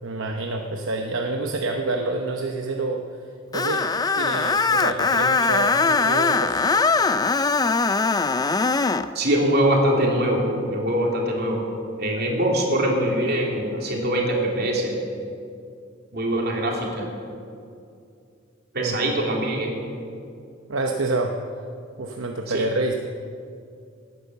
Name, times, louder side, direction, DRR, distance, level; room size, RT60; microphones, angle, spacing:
voice 1, 0.0-3.0 3.5-3.9 4.2-6.6 18.8-19.0 20.7-21.4 22.0-22.9, right 2 dB, 75° right, 3 dB, 0.9 m, -27 dB
Screech, 3.5-9.1, left 4 dB, 20° left, 0.4 m, -21 dB
voice 2, 9.1-11.6 12.0-15.0 16.1-17.1 18.7-19.7 22.5-22.6, right 1 dB, 50° right, -1 dB, 3.0 m, -23 dB
17.5 x 9.7 x 6.9 m, 2.5 s
head